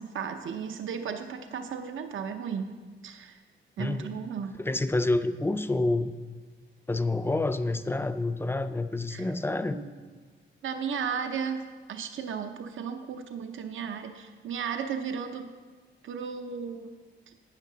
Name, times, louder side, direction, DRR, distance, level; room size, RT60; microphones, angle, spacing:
voice 1, 0.0-2.8 3.0-3.4 3.8-4.5 9.1-9.3 9.7-9.8 10.6-15.5 16.0-17.0 17.3-17.4, right 6 dB, 75° right, 7 dB, 0.7 m, -35 dB
voice 2, 3.8-4.1 4.6-6.1 6.9-9.8, left 2 dB, 10° left, 11 dB, 0.4 m, -28 dB
12.0 x 9.2 x 3.9 m, 1.4 s
wide cardioid pair, 145°, 20 cm